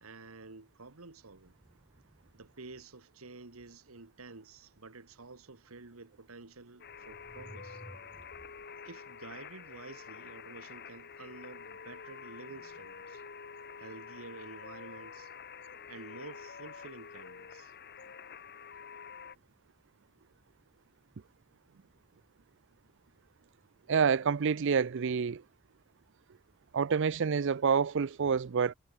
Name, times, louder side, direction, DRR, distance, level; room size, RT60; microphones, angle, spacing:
voice 1, 0.0-1.5 2.3-7.8 8.9-13.2 13.8-15.3 15.9-17.7, right 3 dB, 80° right, 1.7 m, -50 dB
sound 1, 1.0-2.7 5.8-5.9 6.8-8.7, equal, 15° right, 2.1 m, -55 dB
sound 2, 6.8-19.4, left 6 dB, 50° left, 1.3 m, -48 dB
voice 2, 23.9-25.4 26.7-28.7, right 6 dB, 60° right, 0.5 m, -28 dB
head